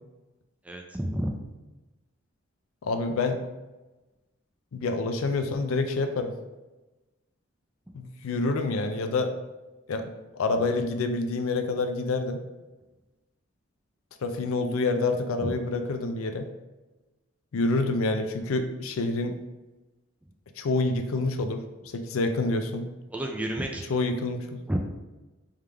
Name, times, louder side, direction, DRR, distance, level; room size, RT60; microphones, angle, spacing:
voice 1, 0.6-1.4 15.4-15.6 23.1-23.8 24.7-24.8, right 1 dB, 5° right, 2 dB, 0.3 m, -30 dB
voice 2, 2.8-3.4 4.7-6.3 7.9-9.3 9.9-12.4 14.2-16.5 17.5-19.4 20.6-22.9 23.9-24.6, left 3 dB, 85° left, 7 dB, 0.4 m, -27 dB
3.5 x 3.4 x 3.3 m, 1.1 s
head